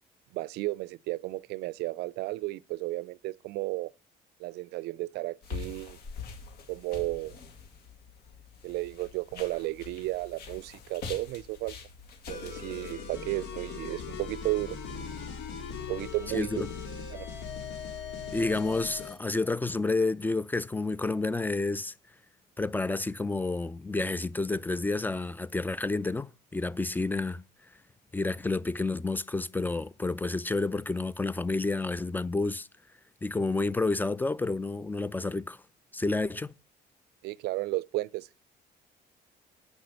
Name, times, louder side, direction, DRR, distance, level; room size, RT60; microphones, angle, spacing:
voice 1, 0.3-3.9 4.4-6.0 6.7-7.4 8.6-11.8 12.3-14.8 15.8-16.7 17.1-17.3 37.2-38.4, right 19 dB, 85° right, 0.4 m, -33 dB
sound 1, 5.4-12.9, left 5 dB, 70° left, 2.2 m, -44 dB
sound 2, 12.3-19.2, left 5 dB, 85° left, 2.3 m, -39 dB
voice 2, 18.3-21.9 22.6-27.4 28.1-32.7 33.2-35.6 35.9-36.5, left 3 dB, 10° left, 0.4 m, -30 dB
8.2 x 6.1 x 6.4 m
cardioid pair, 110°, 17 cm